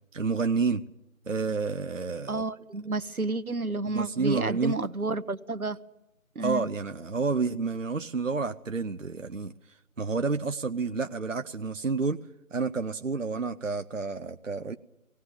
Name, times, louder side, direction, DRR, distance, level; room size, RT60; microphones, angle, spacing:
voice 1, 0.1-0.8 1.3-2.4 3.9-4.8 6.4-9.5 10.0-12.2 12.5-14.8, right 4 dB, 60° right, 9 dB, 0.7 m, -29 dB
voice 2, 2.3-5.8 6.3-6.7, right 3 dB, 85° right, 13 dB, 1.1 m, -31 dB
18.5 x 18.0 x 9.0 m, 0.90 s
figure-of-eight pair, 175°, 43 cm